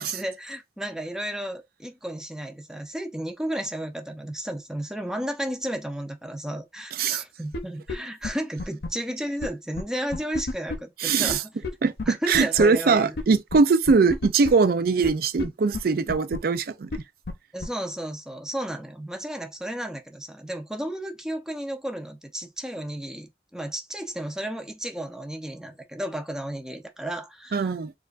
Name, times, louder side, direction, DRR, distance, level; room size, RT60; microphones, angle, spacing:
voice 1, 0.0-11.5 12.1-13.1 17.5-27.7, right 1 dB, 5° right, 0.6 m, -33 dB
sound 1, 7.5-7.6 7.9-8.0 8.2-8.3 8.6-8.9 9.4-9.5 9.8-9.9 10.1-10.8 11.3-11.4 11.6-11.7 12.0-12.1 12.3-12.6 13.2-13.3 13.5-13.6 13.9-14.5 15.0-15.1 15.4-15.5 15.7-15.8 16.1-16.4 16.9-17.0 17.3-17.4 17.6-17.7, left 2 dB, 65° left, 0.7 m, -30 dB
voice 2, 11.0-11.4 11.8-17.0 27.5-27.9, right 4 dB, 55° right, 0.4 m, -21 dB
4.3 x 2.4 x 2.4 m
head